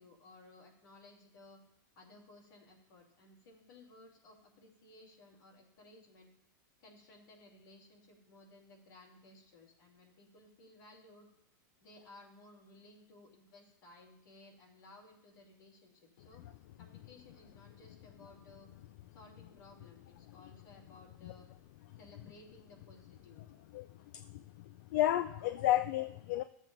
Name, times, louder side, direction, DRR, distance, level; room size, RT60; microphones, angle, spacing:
voice 1, 0.0-1.6 2.0-6.3 6.8-11.3 11.8-16.5 16.8-18.7 19.1-21.5 22.0-23.6, left 2 dB, 80° left, 0 dB, 2.8 m, -58 dB
voice 2, 24.9-26.4, left 13 dB, 60° left, 11 dB, 0.4 m, -31 dB
13.5 x 7.5 x 2.6 m, 0.79 s
supercardioid pair, 140°, 11 cm